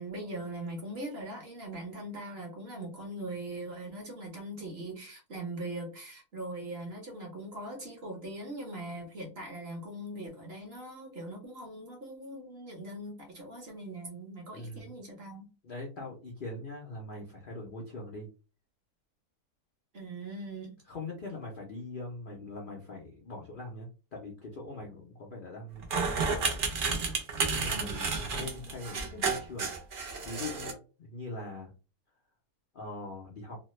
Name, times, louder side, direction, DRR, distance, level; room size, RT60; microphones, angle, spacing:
voice 1, 0.0-15.5 19.9-20.7 27.6-28.1, right 1 dB, 45° right, 0 dB, 1.0 m, -41 dB
voice 2, 14.5-14.9 15.6-18.3 20.9-25.9 26.1-26.5 27.5-29.7 30.2-31.7 32.7-33.6, left 2 dB, 80° left, -1 dB, 0.4 m, -42 dB
sound 1, 25.8-30.7, right 4 dB, 75° right, 0.4 m, -31 dB
3.1 x 2.1 x 3.0 m, 0.34 s
omnidirectional pair, 1.8 m